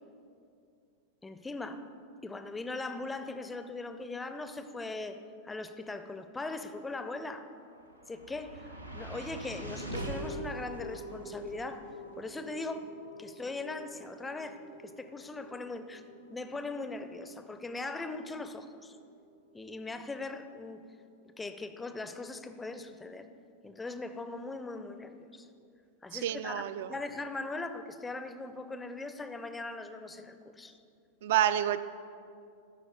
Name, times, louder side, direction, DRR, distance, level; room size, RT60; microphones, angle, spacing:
voice 1, 1.2-1.9 2.2-7.5 8.1-11.9 12.2-16.0 16.3-19.0 19.5-20.8 21.4-23.3 23.6-25.5 26.0-26.6 26.9-30.8, left 3 dB, 10° left, 10 dB, 0.4 m, -40 dB
sound 1, 7.4-19.7, right 1 dB, 85° right, 0.7 m, -45 dB
voice 2, 26.1-26.9 31.2-31.8, right 11 dB, 55° right, 13 dB, 0.3 m, -28 dB
12.5 x 4.8 x 5.2 m, 2.5 s
figure-of-eight pair, 90°, 0 cm